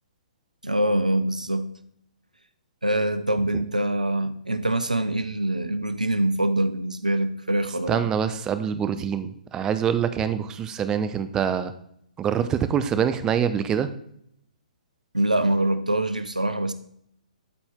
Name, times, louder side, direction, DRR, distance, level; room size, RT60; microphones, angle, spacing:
voice 1, 0.6-1.7 2.8-8.1 15.1-16.7, right 1 dB, 90° right, 0.6 m, -24 dB
voice 2, 7.9-11.7 12.2-13.9, right 8 dB, 15° right, 0.5 m, -25 dB
12.5 x 4.4 x 3.5 m
figure-of-eight pair, 125°, 4 cm